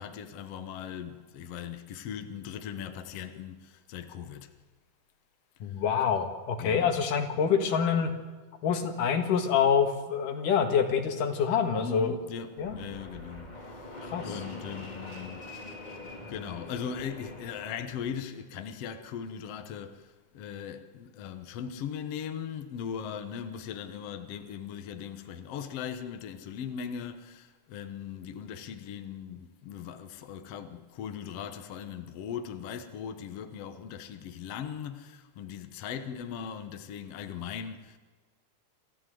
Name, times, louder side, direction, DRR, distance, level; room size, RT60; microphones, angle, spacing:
voice 1, 0.0-4.5 6.6-7.0 11.7-15.7 16.3-38.0, left 8 dB, 60° left, 2.0 m, -39 dB
voice 2, 5.6-8.1 8.6-12.1 12.6-12.8 14.0-14.3, left 7 dB, 80° left, 3.3 m, -26 dB
Fixed-wing aircraft airplane, 12.6-18.2, left 2 dB, 15° left, 2.2 m, -44 dB
27.5 x 14.0 x 7.8 m
omnidirectional pair, 3.7 m